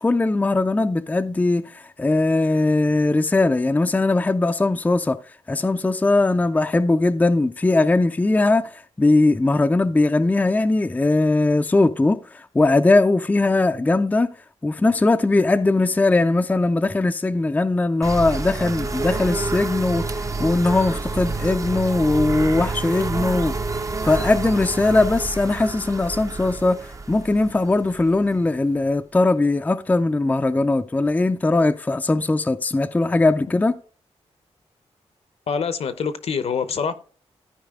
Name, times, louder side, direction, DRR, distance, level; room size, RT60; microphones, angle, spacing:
voice 1, 0.0-5.2 5.5-14.3 14.6-23.5 24.0-26.8 27.1-33.7, left 2 dB, 15° left, 0.4 m, -20 dB
sound 1, 18.0-28.6, right 3 dB, 30° right, 0.6 m, -28 dB
voice 2, 35.5-36.9, left 6 dB, 65° left, 0.8 m, -25 dB
13.5 x 4.8 x 3.6 m
wide cardioid pair, 110°, 11 cm